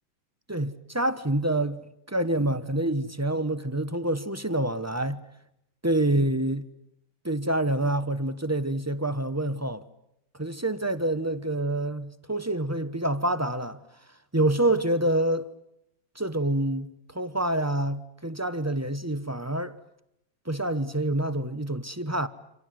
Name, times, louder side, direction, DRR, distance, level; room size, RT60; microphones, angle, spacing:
voice 1, 0.5-1.8 2.1-5.2 5.8-6.7 7.2-9.8 10.4-13.8 14.3-15.5 16.1-19.7 20.5-22.3, right 1 dB, 15° right, 0.7 m, -27 dB
28.5 x 26.5 x 7.7 m
omnidirectional pair, 2.0 m